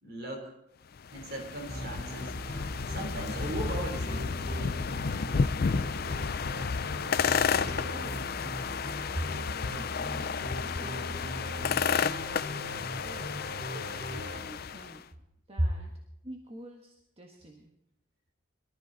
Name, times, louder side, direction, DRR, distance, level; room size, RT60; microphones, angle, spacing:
voice 1, 0.0-0.5 1.1-2.3 2.9-4.3 9.1-9.2, right 1 dB, 50° right, 2 dB, 3.4 m, -37 dB
sound 1, 1.0-15.0, left 6 dB, 50° left, 0.5 m, -32 dB
sound 2, 1.7-14.4, equal, 80° right, 3.3 m, -40 dB
voice 2, 7.9-8.6 9.6-12.1 13.0-13.4 13.7-15.0 15.5-15.9 16.2-17.7, right 1 dB, 30° right, 1 dB, 1.3 m, -49 dB
22.5 x 13.0 x 4.0 m, 0.81 s
head